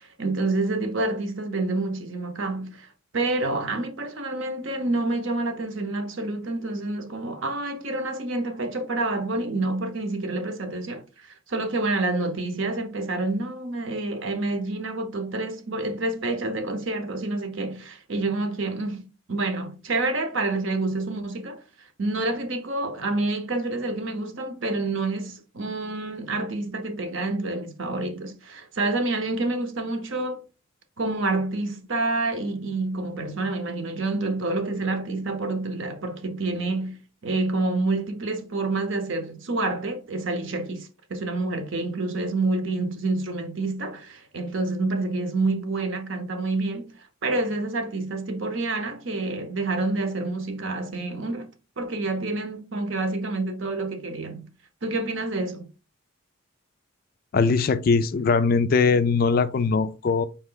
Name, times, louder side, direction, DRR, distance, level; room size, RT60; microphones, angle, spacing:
voice 1, 0.0-2.9 3.1-19.0 19.3-21.6 22.0-30.4 31.0-46.9 47.2-51.5 51.8-54.4 54.8-55.7, right 2 dB, 60° right, 0.8 m, -28 dB
voice 2, 57.3-60.3, left 4 dB, 40° left, 0.3 m, -21 dB
4.4 x 3.1 x 3.8 m
head